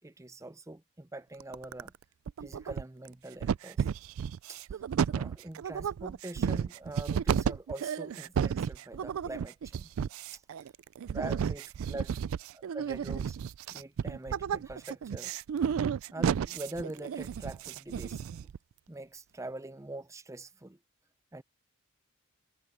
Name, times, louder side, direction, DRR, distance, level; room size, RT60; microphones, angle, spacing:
voice 1, 0.0-1.9 2.4-3.9 4.5-4.8 5.1-9.9 10.3-10.4 11.1-12.2 12.5-13.4 13.7-15.3 16.1-18.2 18.9-20.8 21.3-21.4, right 2 dB, 15° right, 0.5 m, -43 dB
sound 1, 1.4-2.0 2.3-3.1 3.4-18.6, right 7 dB, 70° right, 0.3 m, -32 dB
head